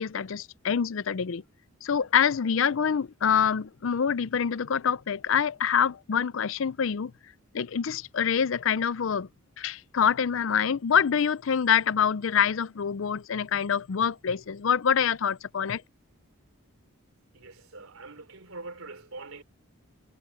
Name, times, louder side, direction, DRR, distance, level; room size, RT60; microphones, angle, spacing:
voice 1, 0.0-1.4 1.8-7.1 7.5-9.3 9.6-15.8, left 7 dB, 60° left, 0.5 m, -26 dB
voice 2, 17.3-19.4, right 3 dB, 75° right, 3.4 m, -43 dB
head